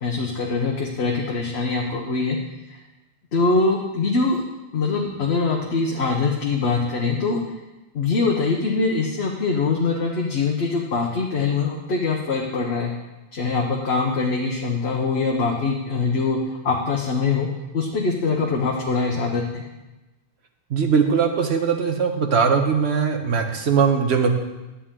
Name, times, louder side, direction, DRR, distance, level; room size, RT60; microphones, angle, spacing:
voice 1, 0.0-2.4 2.7-2.8 3.3-4.4 4.7-7.4 7.9-12.9 13.3-16.4 16.6-17.5 17.7-19.6, left 4 dB, 75° left, 0 dB, 1.2 m, -23 dB
voice 2, 20.7-24.3, right 6 dB, 75° right, 4 dB, 1.3 m, -20 dB
11.0 x 8.6 x 3.7 m, 1.1 s
omnidirectional pair, 1.1 m